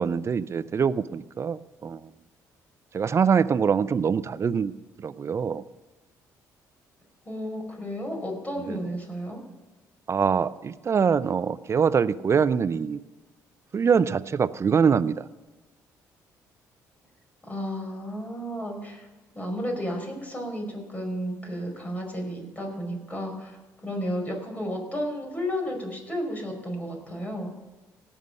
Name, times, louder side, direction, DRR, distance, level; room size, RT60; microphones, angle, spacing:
voice 1, 0.0-2.1 2.9-4.7 5.0-5.6 8.6-8.8 10.1-13.0 13.7-15.2, right 6 dB, 40° right, 16 dB, 0.6 m, -24 dB
voice 2, 7.3-9.4 17.5-19.1 19.4-23.6 23.8-27.5, equal, 20° left, 1 dB, 5.2 m, -32 dB
17.5 x 7.4 x 5.6 m, 1.2 s
supercardioid pair, 75°, 7 cm